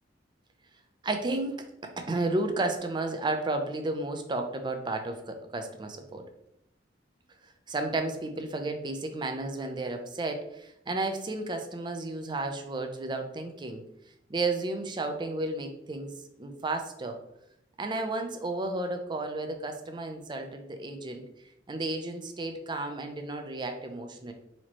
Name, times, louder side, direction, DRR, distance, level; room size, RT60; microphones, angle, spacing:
voice 1, 1.0-6.2 7.4-13.8 14.3-16.1 16.4-17.2 17.8-21.2 21.7-24.3, right 2 dB, 25° right, 5 dB, 0.5 m, -32 dB
4.2 x 3.0 x 2.9 m, 0.80 s
head